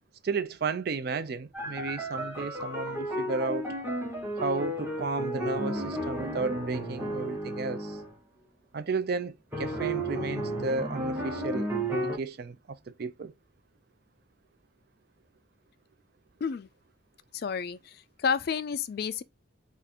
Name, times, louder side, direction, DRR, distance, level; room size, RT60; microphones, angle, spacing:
voice 1, 0.2-3.7 4.4-8.0 8.7-13.3, right 4 dB, 50° right, 0.4 m, -33 dB
sound 1, 1.5-8.1 9.5-12.2, right 1 dB, 10° right, 0.8 m, -33 dB
voice 2, 17.3-19.2, left 6 dB, 50° left, 0.3 m, -31 dB
3.6 x 2.5 x 4.1 m
head